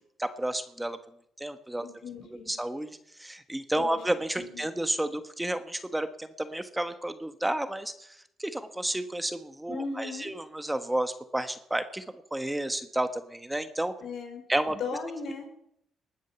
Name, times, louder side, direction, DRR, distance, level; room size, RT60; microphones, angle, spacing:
voice 1, 0.2-1.0 1.4-12.0 12.3-13.9 14.5-14.8, right 1 dB, 10° right, 9 dB, 1.3 m, -31 dB
voice 2, 1.8-2.5 3.8-4.0 4.4-4.6 9.7-10.3 14.0-15.5, left 4 dB, 75° left, 4 dB, 4.4 m, -37 dB
20.0 x 9.1 x 7.1 m, 0.74 s
cardioid pair, 90°, 0 cm